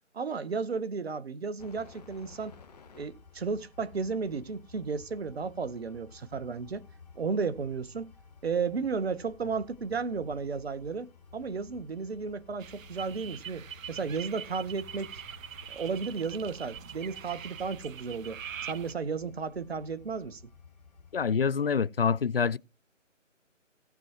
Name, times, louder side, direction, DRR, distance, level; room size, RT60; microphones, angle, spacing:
voice 1, 0.1-2.6 2.9-6.8 7.2-8.1 8.4-15.2 15.7-18.4 18.7-20.4, right 5 dB, 50° right, 0.9 m, -33 dB
sound 1, 1.6-21.3, left 4 dB, 30° left, 1.5 m, -54 dB
sound 2, 12.6-18.9, right 8 dB, 85° right, 0.6 m, -43 dB
voice 2, 21.1-22.6, left 6 dB, 50° left, 0.5 m, -26 dB
18.0 x 6.1 x 2.9 m
figure-of-eight pair, 160°, 39 cm